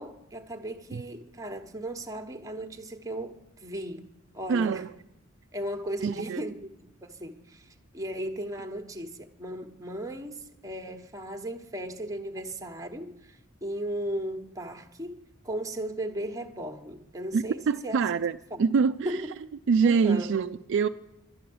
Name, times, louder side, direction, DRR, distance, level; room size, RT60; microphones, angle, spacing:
voice 1, 0.0-4.1 4.3-4.9 5.5-6.7 7.0-15.2 15.4-18.0 18.5-18.6 19.0-19.3 19.8-20.3, right 1 dB, 15° right, 1.1 m, -36 dB
voice 2, 4.5-4.9 6.0-6.4 17.3-19.2 19.7-20.9, right 5 dB, 60° right, 0.4 m, -25 dB
11.5 x 11.0 x 7.8 m
head